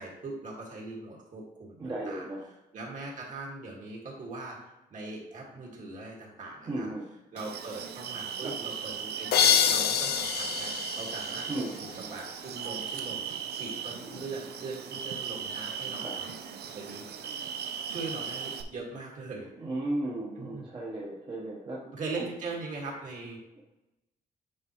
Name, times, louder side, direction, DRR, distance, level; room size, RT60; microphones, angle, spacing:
voice 1, 0.0-2.3 2.7-4.6 4.9-6.9 7.3-16.3 16.7-17.0 17.9-19.5 20.4-20.7 21.9-23.4, right 3 dB, 50° right, -2 dB, 1.9 m, -40 dB
voice 2, 1.8-2.5 6.7-7.1 8.4-8.6 11.5-11.8 16.0-16.2 19.6-21.8 22.2-22.3, right 1 dB, 30° right, -4 dB, 1.1 m, -35 dB
sound 1, 7.4-18.6, right 7 dB, 85° right, 0.6 m, -38 dB
sound 2, 9.3-12.0, left 8 dB, 85° left, 0.6 m, -26 dB
9.7 x 4.5 x 3.0 m, 0.97 s
wide cardioid pair, 165°, 16 cm